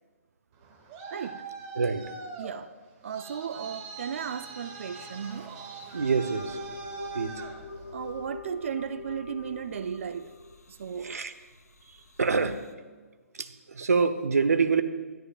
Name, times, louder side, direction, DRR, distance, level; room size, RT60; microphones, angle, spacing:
Traffic noise roadway noise, 0.5-8.3, right 5 dB, 30° right, 2.0 m, -43 dB
voice 1, 1.1-1.4 2.4-2.7 3.0-5.5 7.9-10.3 10.7-11.2, right 7 dB, 55° right, 0.5 m, -35 dB
voice 2, 1.8-2.1 5.9-6.6 7.1-7.4 11.0-11.3 12.2-12.6 13.4-14.8, right 5 dB, 75° right, 0.9 m, -26 dB
sound 1, 6.3-12.7, left 3 dB, 90° left, 0.9 m, -44 dB
22.5 x 11.0 x 2.4 m
figure-of-eight pair, 135°, 8 cm